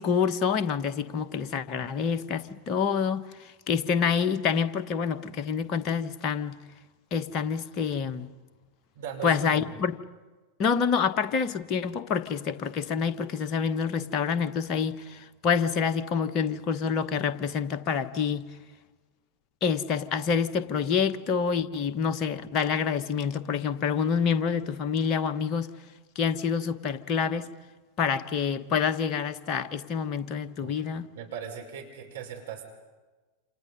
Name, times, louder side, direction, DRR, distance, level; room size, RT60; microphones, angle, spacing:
voice 1, 0.0-6.6 7.1-8.3 9.2-10.0 10.6-18.5 19.6-25.7 26.1-27.5 28.0-31.1, left 6 dB, 35° left, 1.2 m, -27 dB
voice 2, 8.9-9.6 30.6-30.9 31.1-32.6, right 7 dB, 60° right, 5.5 m, -39 dB
29.0 x 27.5 x 5.5 m
figure-of-eight pair, 90°, 0 cm